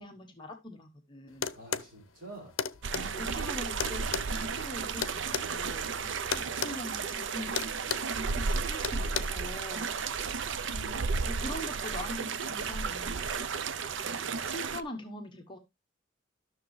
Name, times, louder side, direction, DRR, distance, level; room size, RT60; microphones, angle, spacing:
voice 1, 0.0-1.5 2.9-7.5 8.3-9.9 10.7-13.3 14.0-15.6, left 1 dB, 25° left, 3 dB, 1.0 m, -43 dB
sound 1, 1.4-1.9 2.6-3.1 3.8-5.5 6.3-6.8 7.0-7.2 7.6-8.1 8.8-9.2, left 7 dB, 75° left, 0.7 m, -33 dB
voice 2, 1.5-2.5 2.9-3.3 5.8-6.2 9.8-10.0, right 3 dB, 45° right, -2 dB, 4.8 m, -48 dB
sound 2, 1.9-12.8, right 2 dB, 10° right, 1.4 m, -58 dB
sound 3, 2.8-14.8, right 5 dB, 65° right, 0.5 m, -33 dB
12.5 x 6.4 x 3.2 m, 0.22 s
head